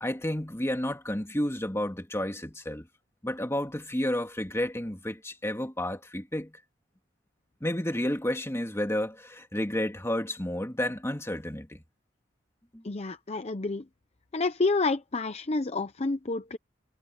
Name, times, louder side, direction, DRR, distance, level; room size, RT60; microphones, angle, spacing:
voice 1, 0.0-2.9 3.2-6.5 7.6-11.8 12.7-12.8, left 1 dB, 15° left, 2.3 m, -31 dB
voice 2, 12.8-13.8 14.3-16.6, left 3 dB, 35° left, 0.7 m, -29 dB
head